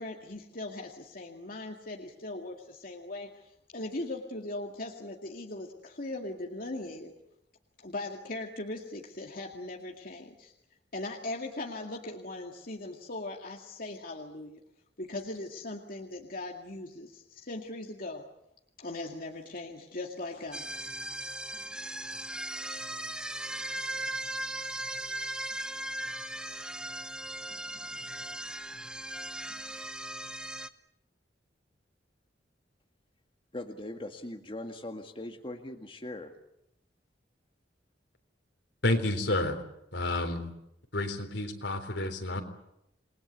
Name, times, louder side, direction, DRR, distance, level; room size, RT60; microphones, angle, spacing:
voice 1, 0.0-7.1 7.8-10.5 10.9-14.6 15.0-18.2 18.8-20.7, left 2 dB, 50° left, 1 dB, 2.2 m, -39 dB
sound 1, 20.5-30.7, right 1 dB, 5° right, 0.9 m, -38 dB
voice 2, 33.5-36.3, left 1 dB, 30° left, 4 dB, 1.9 m, -40 dB
voice 3, 38.8-39.6 39.9-40.5 40.9-42.4, left 2 dB, 75° left, 7 dB, 3.8 m, -30 dB
28.0 x 21.5 x 8.3 m, 0.81 s
head